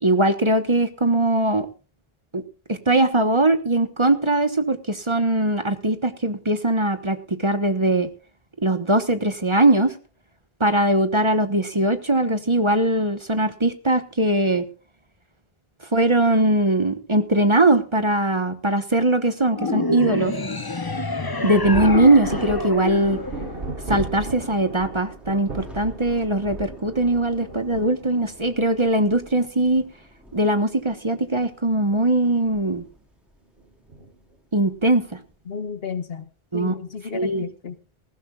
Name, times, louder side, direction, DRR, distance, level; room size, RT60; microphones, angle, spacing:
voice 1, 0.0-1.7 2.3-2.4 2.7-8.1 8.6-9.9 10.6-14.7 15.9-20.3 21.4-23.2 23.9-29.8 30.3-32.8 34.5-35.2 36.5-36.7 37.1-37.4, right 1 dB, 30° right, 9 dB, 1.2 m, -20 dB
sound 1, 19.6-24.1, left 2 dB, 25° left, 0.9 m, -27 dB
Thunder, 21.6-28.6 29.7-29.8 31.2-31.5 31.8-31.9 33.9-34.1 34.8-35.2, right 3 dB, 65° right, 1.8 m, -35 dB
Thunder / Rain, 22.2-35.3, left 1 dB, ahead, 3.9 m, -46 dB
voice 2, 35.5-36.3 36.5-37.8, left 6 dB, 70° left, 11 dB, 1.4 m, -32 dB
19.0 x 15.5 x 2.4 m, 0.35 s
omnidirectional pair, 1.0 m